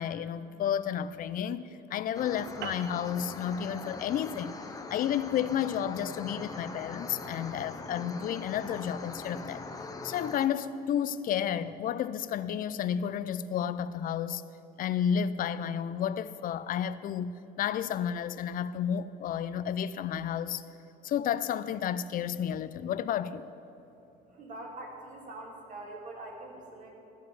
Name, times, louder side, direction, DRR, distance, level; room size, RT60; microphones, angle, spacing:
voice 1, 0.0-4.6 4.9-9.6 10.0-14.4 14.8-20.6 21.0-23.5, left 9 dB, 55° left, 0.5 m, -31 dB
sound 1, 2.1-10.5, left 3 dB, 20° left, 1.0 m, -42 dB
sound 2, 2.6-7.4, right 10 dB, 85° right, 0.6 m, -48 dB
voice 2, 24.3-26.9, right 2 dB, 50° right, 2.6 m, -44 dB
14.0 x 4.9 x 9.1 m
cardioid pair, 110°, 17 cm